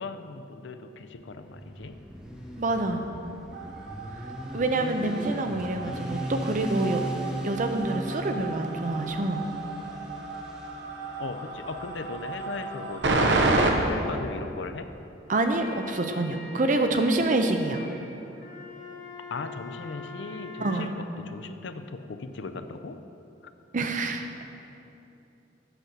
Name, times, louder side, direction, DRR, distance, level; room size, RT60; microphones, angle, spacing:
voice 1, 0.0-2.0 4.5-4.8 11.2-13.1 13.9-14.9 19.3-23.0 23.4-23.5, left 3 dB, 85° left, 9 dB, 0.5 m, -38 dB
Motorcycle, 1.1-12.8, right 1 dB, 5° right, 0.8 m, -39 dB
voice 2, 2.6-3.0 4.5-7.0 7.4-9.5 15.3-17.9 20.6-20.9 23.7-24.3, right 2 dB, 45° right, 6 dB, 0.6 m, -26 dB
sound 1, 3.5-13.7, right 2 dB, 75° right, 0.8 m, -30 dB
sound 2, 15.3-20.9, left 2 dB, 45° left, 1.2 m, -43 dB
8.0 x 6.4 x 5.9 m, 2.8 s
head